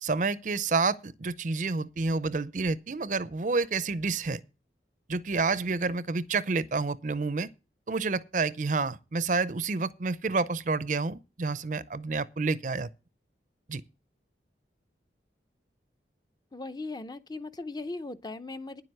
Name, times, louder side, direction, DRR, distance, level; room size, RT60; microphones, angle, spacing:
voice 1, 0.0-4.4 5.1-7.5 7.9-12.9 13.7-13.8, right 4 dB, 45° right, 0.5 m, -29 dB
voice 2, 16.5-18.8, left 2 dB, 20° left, 0.6 m, -38 dB
10.0 x 7.8 x 6.6 m
head